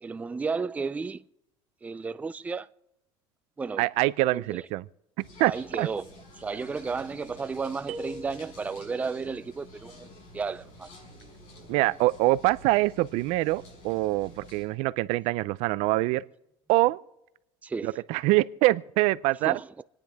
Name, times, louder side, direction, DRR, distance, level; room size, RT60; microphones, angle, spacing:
voice 1, 0.0-1.2 1.8-2.7 3.6-3.9 4.3-4.6 5.4-6.1 6.4-10.9 17.6-18.0 19.4-19.7, right 4 dB, 15° right, 0.4 m, -33 dB
voice 2, 3.8-4.8 5.4-5.5 5.8-5.9 11.7-16.2 16.7-17.0 17.8-19.6, right 19 dB, 75° right, 0.5 m, -24 dB
sound 1, 5.2-14.6, left 1 dB, 75° left, 5.8 m, -50 dB
sound 2, 7.9-9.1, right 2 dB, 55° right, 1.3 m, -41 dB
27.5 x 9.9 x 3.5 m
cardioid pair, 125°, 11 cm